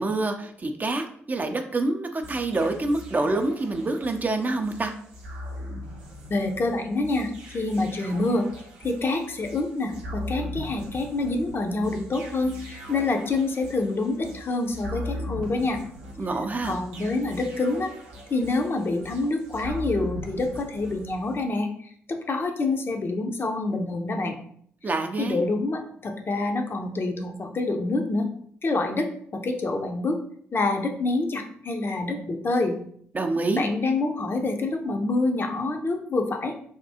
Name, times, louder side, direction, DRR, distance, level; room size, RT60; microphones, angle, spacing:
voice 1, 0.0-4.9 16.2-16.7 24.8-25.4 33.1-33.6, right 2 dB, 30° right, 5 dB, 0.4 m, -26 dB
sound 1, 2.2-21.4, left 1 dB, 75° right, 0.6 m, -40 dB
voice 2, 6.3-8.5 8.8-15.8 16.6-17.9 18.3-21.7 22.1-24.4 25.2-28.3 28.6-29.1 29.3-30.2 30.5-32.8 33.5-36.5, left 2 dB, 40° left, 4 dB, 0.6 m, -26 dB
3.4 x 2.3 x 2.7 m, 0.62 s
hypercardioid pair, 40°, 6 cm